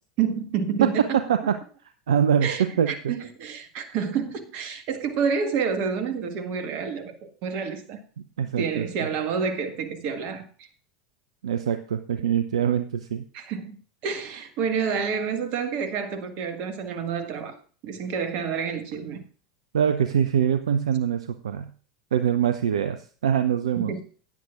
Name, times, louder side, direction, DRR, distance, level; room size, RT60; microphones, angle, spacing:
voice 1, 0.2-1.2 2.4-7.1 7.4-8.0 8.6-10.7 13.3-13.8 14.0-17.6 17.8-19.2 23.7-24.0, right 6 dB, 50° right, 1.6 m, -29 dB
voice 2, 2.1-3.1 8.2-8.9 11.4-13.2 19.7-21.7 22.1-23.9, right 8 dB, 70° right, 0.6 m, -24 dB
16.5 x 9.6 x 2.5 m
figure-of-eight pair, 80°, 3 cm